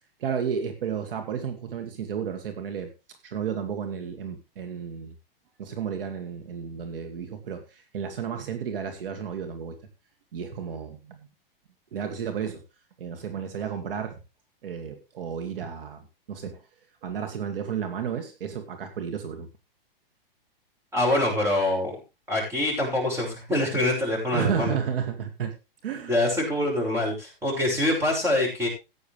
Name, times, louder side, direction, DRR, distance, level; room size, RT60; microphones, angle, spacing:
voice 1, 0.2-2.9 3.2-5.2 5.6-9.8 10.3-11.3 11.9-12.6 13.0-14.2 14.6-16.6 17.0-19.5 24.3-25.5 25.8-26.2, right 7 dB, 70° right, 7 dB, 2.4 m, -32 dB
voice 2, 20.9-22.0 22.3-24.8 26.1-28.7, left 1 dB, 10° right, -1 dB, 6.1 m, -25 dB
14.5 x 9.5 x 3.4 m, 0.27 s
hypercardioid pair, 150°, 29 cm